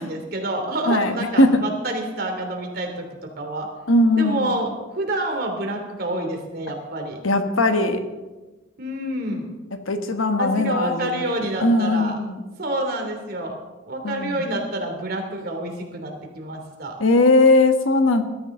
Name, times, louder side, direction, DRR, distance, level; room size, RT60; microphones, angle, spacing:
voice 1, 0.0-3.0 3.4-3.7 4.2-7.2 8.8-9.5 10.4-12.1 12.6-13.5 13.8-16.9, right 1 dB, 50° right, 2 dB, 3.0 m, -28 dB
voice 2, 0.9-1.6 3.9-4.6 7.2-8.0 9.9-11.2 11.6-12.4 14.0-14.5 17.0-18.2, left 2 dB, 90° left, 7 dB, 1.4 m, -19 dB
20.5 x 13.0 x 3.8 m, 1.2 s
head